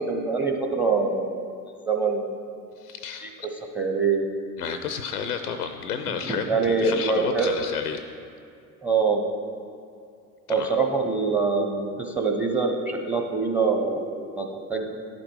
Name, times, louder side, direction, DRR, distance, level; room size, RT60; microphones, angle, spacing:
voice 1, 0.0-1.4 1.9-2.3 3.2-3.3 3.7-4.3 6.5-7.5 8.8-9.2 10.5-15.0, right 4 dB, 5° right, 4 dB, 0.9 m, -24 dB
voice 2, 2.8-3.5 4.6-8.0 10.5-10.7, left 7 dB, 80° left, 8 dB, 0.5 m, -31 dB
11.5 x 5.1 x 4.7 m, 2.4 s
figure-of-eight pair, 60°, 45 cm